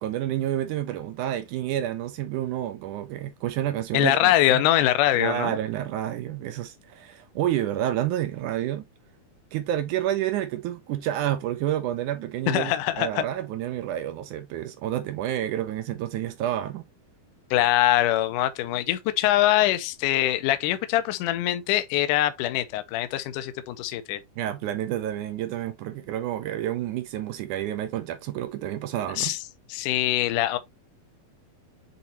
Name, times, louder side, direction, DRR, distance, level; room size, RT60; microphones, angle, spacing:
voice 1, 0.0-4.6 5.1-8.8 9.5-16.9 24.4-29.3, right 12 dB, 75° right, 1.8 m, -29 dB
voice 2, 3.9-5.6 12.5-13.3 17.5-24.2 29.1-29.4 29.7-30.6, left 14 dB, 80° left, 2.0 m, -23 dB
8.3 x 4.1 x 2.8 m
omnidirectional pair, 4.4 m